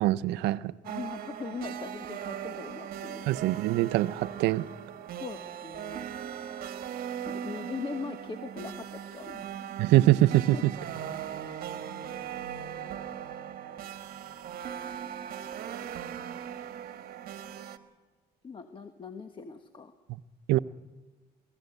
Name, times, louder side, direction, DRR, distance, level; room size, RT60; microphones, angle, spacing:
voice 1, 0.0-0.7 3.3-4.7 9.8-10.6 20.5-20.6, right 16 dB, 85° right, 16 dB, 0.6 m, -23 dB
voice 2, 0.8-3.6 5.2-6.1 7.3-9.5 10.5-10.7 12.8-13.0 15.8-15.9 18.4-19.9, left 5 dB, 30° left, 7 dB, 1.3 m, -41 dB
sound 1, 0.8-17.8, right 9 dB, 60° right, 1.4 m, -39 dB
23.0 x 15.5 x 8.0 m, 1.4 s
cardioid pair, 110°, 17 cm